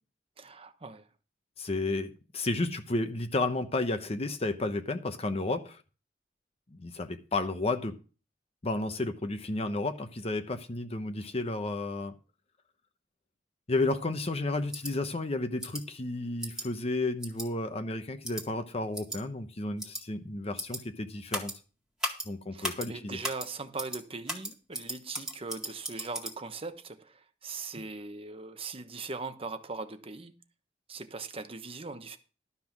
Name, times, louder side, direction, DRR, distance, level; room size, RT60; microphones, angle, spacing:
voice 1, 0.4-1.1 22.5-30.3 30.9-32.2, right 3 dB, 35° right, 1.0 m, -40 dB
voice 2, 1.6-5.8 6.7-7.9 8.6-12.1 13.7-21.5 22.3-23.2, left 2 dB, 35° left, 0.9 m, -32 dB
sound 1, 14.7-14.9 15.6-15.8 16.4-16.6 17.2-17.5 18.2-18.4 18.9-19.2 19.8-20.0 20.6-20.8 21.3-21.5 22.0-22.3 22.6-22.9 23.2-23.5 23.8-24.0 24.3-26.3, equal, 5° right, 1.9 m, -35 dB
12.0 x 5.7 x 6.0 m
head